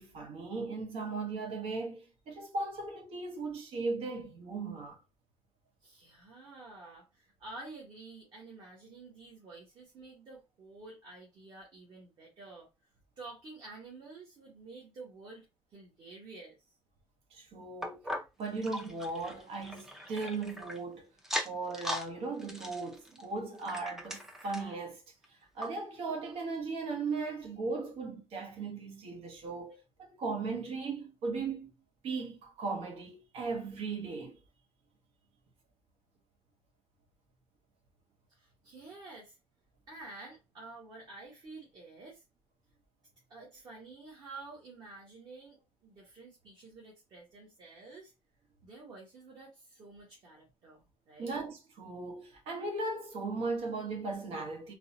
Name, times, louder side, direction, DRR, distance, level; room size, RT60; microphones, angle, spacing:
voice 1, 0.0-5.0 17.3-18.0 18.4-21.1 21.4-25.0 25.5-31.7 32.0-34.4 51.2-54.7, right 3 dB, 65° right, 1.2 m, -37 dB
voice 2, 5.8-12.7 13.2-15.5 15.7-16.6 38.3-39.4 39.9-42.2 43.3-48.1 48.6-51.3, right 3 dB, 40° right, 1.4 m, -50 dB
sound 1, 17.8-20.8 21.2-22.1 22.4-24.8 25.2-25.3 25.6-25.7 26.3-26.4, equal, 5° right, 0.5 m, -39 dB
4.0 x 2.9 x 2.6 m
cardioid pair, 180°, 11 cm